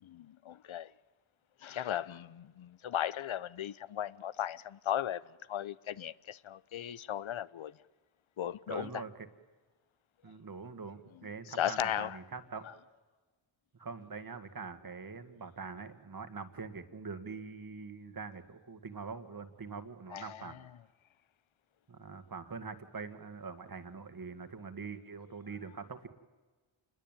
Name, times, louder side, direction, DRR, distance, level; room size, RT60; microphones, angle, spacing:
voice 1, 0.0-0.9 1.6-5.2 5.5-7.7 8.4-8.9 11.6-12.2 20.1-20.4, left 10 dB, 80° left, 0.8 m, -36 dB
voice 2, 8.7-9.3 10.2-12.7 13.7-20.6 21.9-26.1, right 5 dB, 45° right, 2.0 m, -44 dB
28.5 x 21.5 x 9.1 m
wide cardioid pair, 140°, 48 cm